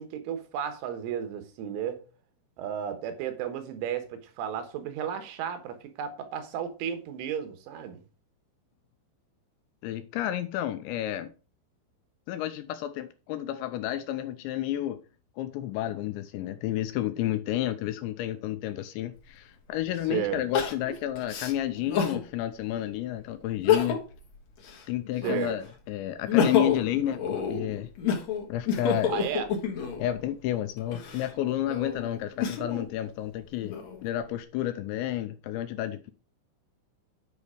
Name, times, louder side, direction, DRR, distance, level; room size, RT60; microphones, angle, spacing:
voice 1, 0.0-2.0 2.6-8.0 20.1-20.4 25.2-25.6 29.1-29.5, right 9 dB, 85° right, 3.7 m, -33 dB
voice 2, 9.8-11.3 12.3-15.0 15.4-24.0 24.9-27.9 28.5-29.2 30.0-33.8 34.0-36.1, left 13 dB, 85° left, 2.7 m, -31 dB
Crying sobbing, 19.2-19.3 20.5-22.2 22.7-22.8 23.5-24.2 24.6-25.6 26.1-30.1 30.8-32.9 33.4-34.2, left 7 dB, 60° left, 1.9 m, -29 dB
9.3 x 5.4 x 4.9 m
omnidirectional pair, 5.5 m